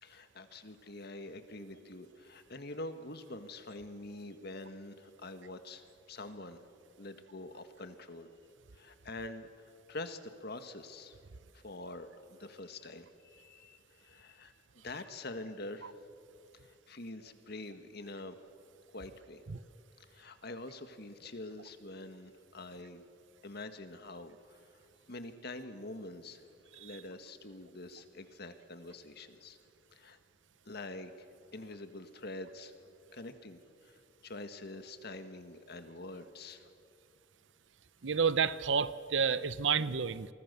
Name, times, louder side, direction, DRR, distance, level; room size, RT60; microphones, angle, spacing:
voice 1, 0.0-6.6 7.0-8.3 8.7-11.2 11.5-14.5 14.8-15.9 16.5-18.4 18.9-19.4 20.1-23.0 23.4-24.7 25.1-26.4 26.7-29.6 29.9-30.2 30.6-31.3 31.5-32.7 33.1-36.7, left 2 dB, 55° left, 9 dB, 1.8 m, -46 dB
voice 2, 38.0-40.3, right 6 dB, 75° right, 16 dB, 0.8 m, -30 dB
29.5 x 24.0 x 6.9 m, 2.4 s
head